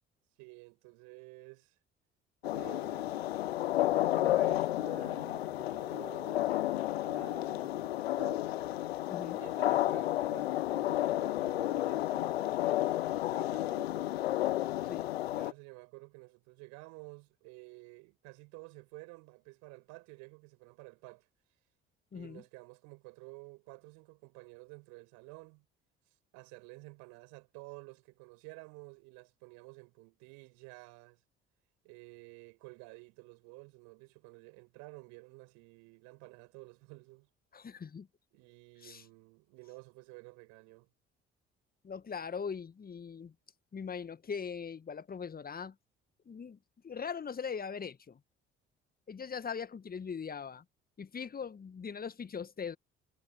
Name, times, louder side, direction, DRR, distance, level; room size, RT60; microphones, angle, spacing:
voice 1, 0.4-1.7 2.5-3.3 3.7-8.5 9.3-14.1 15.3-21.3 22.1-25.6 26.3-31.2 31.8-37.3 38.3-40.9, right 29 dB, 65° right, 6.4 m, -52 dB
sound 1, 2.4-15.5, left 15 dB, 75° left, 0.6 m, -32 dB
voice 2, 9.1-9.4 14.9-15.1 22.1-22.4 37.5-38.1 38.8-39.0 41.8-43.3 43.7-45.7 46.2-46.6 46.8-48.2 49.1-50.6 51.0-52.8, left 6 dB, 30° left, 1.7 m, -40 dB
figure-of-eight pair, 50°, 31 cm